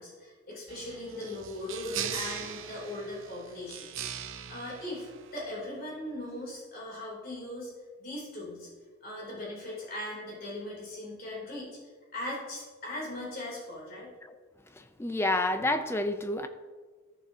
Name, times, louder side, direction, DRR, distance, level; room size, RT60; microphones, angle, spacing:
voice 1, 0.0-7.7 8.0-8.7 9.0-14.1, left 1 dB, 45° left, -5 dB, 3.0 m, -39 dB
sound 1, 0.7-5.7, right 9 dB, 65° right, 0.6 m, -40 dB
voice 2, 15.0-16.5, left 2 dB, 10° left, 8 dB, 0.4 m, -28 dB
14.5 x 7.0 x 2.8 m, 1.5 s
head